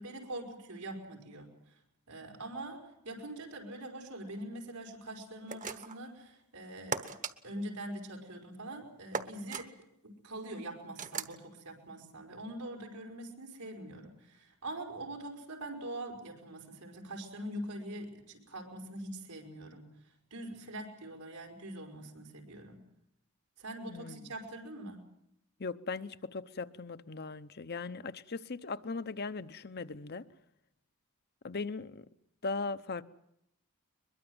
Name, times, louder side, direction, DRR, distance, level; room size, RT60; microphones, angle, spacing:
voice 1, 0.0-1.7 2.1-7.0 7.4-9.7 10.0-19.9 20.3-22.8 23.6-25.0, right 1 dB, 90° right, 5.1 m, -43 dB
sound 1, 5.5-6.1 6.9-7.3 9.1-9.7 11.0-11.4, right 5 dB, 35° right, 1.2 m, -37 dB
voice 2, 23.9-24.3 25.6-30.3 31.4-32.0 32.4-33.0, left 4 dB, 45° left, 0.9 m, -39 dB
22.5 x 22.0 x 7.9 m
head